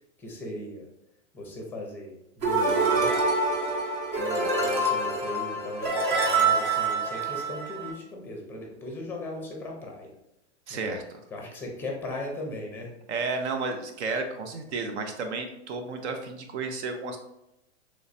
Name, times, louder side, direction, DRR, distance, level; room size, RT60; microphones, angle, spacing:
voice 1, 0.2-0.8 1.3-3.1 4.5-10.1 10.7-10.9 11.3-12.9, left 1 dB, 5° left, 0 dB, 0.6 m, -38 dB
sound 1, 2.4-7.9, right 3 dB, 40° right, 0.9 m, -26 dB
voice 2, 4.2-4.5 10.7-11.0 13.1-17.2, right 4 dB, 65° right, 5 dB, 0.7 m, -32 dB
3.2 x 3.1 x 2.6 m, 0.83 s
hypercardioid pair, 135°, 36 cm